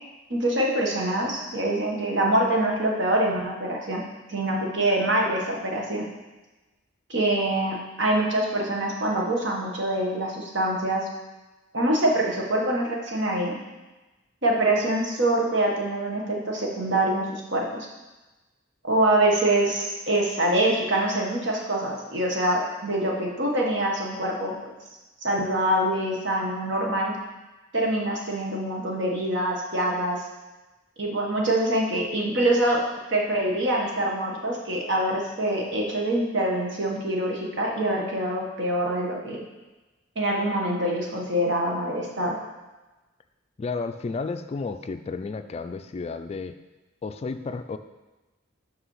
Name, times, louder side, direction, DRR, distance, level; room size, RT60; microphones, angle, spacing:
voice 1, 0.3-6.1 7.1-11.1 11.7-13.5 14.4-17.9 18.8-24.7 25.2-27.2 27.7-30.2 31.0-32.8 33.1-39.4 40.1-42.4, right 1 dB, 65° right, -1 dB, 1.5 m, -25 dB
voice 2, 43.6-46.6 47.0-47.8, left 4 dB, 30° left, 9 dB, 0.3 m, -32 dB
6.0 x 5.7 x 5.6 m, 1.1 s
head